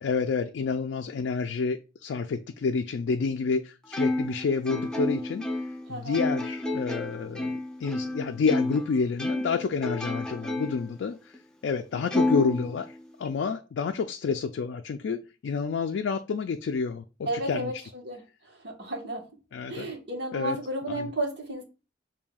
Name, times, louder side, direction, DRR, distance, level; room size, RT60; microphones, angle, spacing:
voice 1, 0.0-5.5 5.9-11.3 11.6-12.9 13.2-17.7 19.5-19.9 20.3-20.6 20.9-21.1, left 5 dB, 80° left, 0.3 m, -29 dB
Plucked string instrument, 3.9-8.9 9.2-10.9 11.3-11.4 12.1-13.3, left 1 dB, 5° left, 0.5 m, -30 dB
voice 2, 5.9-6.2 11.9-12.2 17.2-18.2 18.5-19.2 19.7-21.6, right 1 dB, 70° right, 1.3 m, -33 dB
6.9 x 2.7 x 2.3 m
head